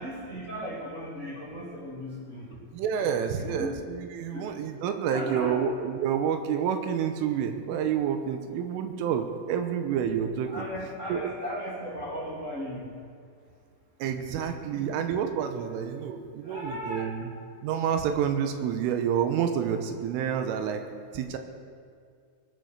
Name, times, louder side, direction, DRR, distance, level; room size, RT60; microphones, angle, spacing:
voice 1, 0.0-2.6 3.4-3.8 4.3-4.6 5.0-5.6 10.5-12.9 14.3-14.9 16.4-17.2, equal, 25° right, -6 dB, 1.7 m, -37 dB
voice 2, 2.7-10.7 11.1-11.3 14.0-17.3 17.6-20.8 21.1-21.4, right 8 dB, 85° right, 7 dB, 3.4 m, -29 dB
20.5 x 9.7 x 6.4 m, 2.3 s
omnidirectional pair, 5.8 m